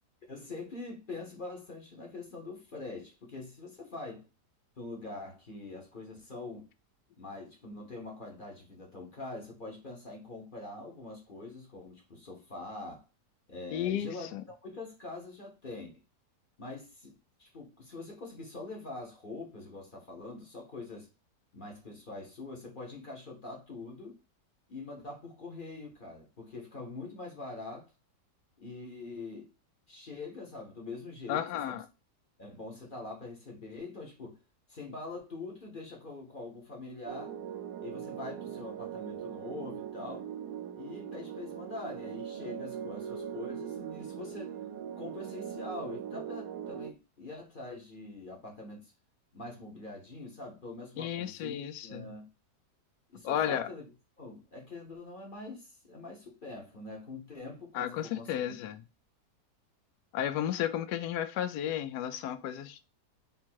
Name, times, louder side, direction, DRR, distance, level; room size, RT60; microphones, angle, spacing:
voice 1, 0.3-4.2 4.8-6.7 7.2-13.0 13.5-14.3 14.6-15.9 16.6-17.1 17.4-21.1 21.5-24.1 24.7-27.9 28.6-29.5 29.9-31.8 32.4-34.4 34.7-37.4 37.8-40.3 40.7-44.6 45.0-48.9 49.3-52.3 53.1-53.8 54.2-58.3, left 3 dB, 35° left, 1.0 m, -44 dB
voice 2, 13.7-14.4 31.3-31.8 51.0-52.1 53.2-53.7 57.7-58.8 60.1-62.9, left 10 dB, 75° left, 1.1 m, -33 dB
sound 1, 37.1-46.9, right 8 dB, 75° right, 1.1 m, -40 dB
3.6 x 2.8 x 4.4 m
omnidirectional pair, 1.9 m